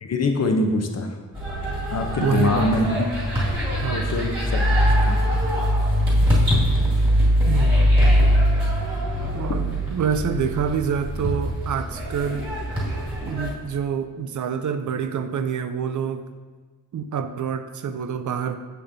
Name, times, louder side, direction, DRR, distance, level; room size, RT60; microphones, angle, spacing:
voice 1, 0.0-1.1 1.9-3.1 3.9-4.6 5.1-5.2, left 2 dB, 50° left, 4 dB, 0.7 m, -23 dB
sound 1, 1.3-13.5, equal, 15° right, 2.0 m, -22 dB
voice 2, 2.2-2.9 3.8-4.0 6.3-6.4 7.5-7.9 9.3-12.5 13.2-16.3 16.9-18.6, right 7 dB, 60° right, 9 dB, 0.4 m, -27 dB
7.8 x 6.8 x 2.6 m, 1.4 s
wide cardioid pair, 180°, 34 cm